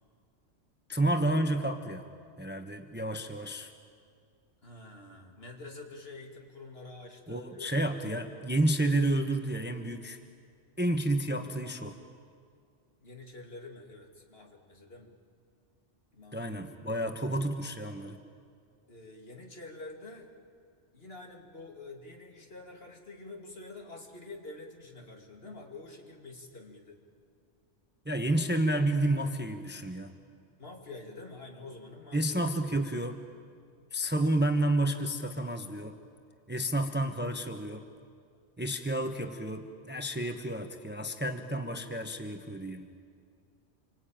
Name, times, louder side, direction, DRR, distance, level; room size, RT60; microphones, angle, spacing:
voice 1, 0.9-2.1 2.4-3.7 7.3-10.2 10.8-12.0 16.3-18.2 28.0-30.1 32.1-33.2 33.9-36.0 36.5-37.9 38.6-42.9, right 1 dB, 10° right, 6 dB, 1.1 m, -30 dB
voice 2, 4.6-8.2 13.0-15.1 16.1-16.6 18.9-20.3 20.9-27.0 30.6-32.4, left 2 dB, 55° left, 1 dB, 2.8 m, -47 dB
27.5 x 24.5 x 8.9 m, 2.2 s
omnidirectional pair, 1.2 m